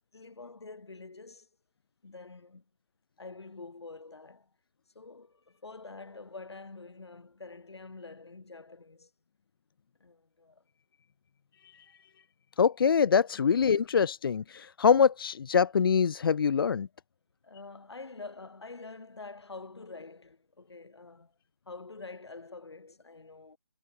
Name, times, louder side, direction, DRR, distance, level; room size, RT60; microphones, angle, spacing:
voice 1, 0.1-1.5 2.0-2.6 3.2-4.5 4.9-9.1 10.0-10.6 17.4-21.3 21.7-23.6, left 3 dB, 85° left, 4.8 m, -46 dB
voice 2, 12.6-16.9, left 6 dB, 60° left, 0.4 m, -24 dB
hypercardioid pair, 165°, 13 cm